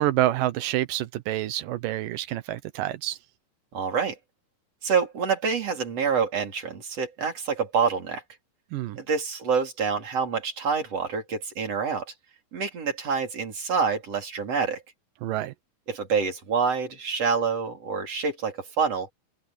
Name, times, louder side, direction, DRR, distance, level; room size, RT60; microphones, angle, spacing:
voice 1, 0.0-3.2 8.7-9.0 15.2-15.5, right 14 dB, 90° right, 2.6 m, -27 dB
voice 2, 3.7-4.2 4.8-8.2 9.0-12.1 12.5-14.8 15.9-19.1, right 5 dB, 50° right, 4.8 m, -27 dB
omnidirectional pair, 3.7 m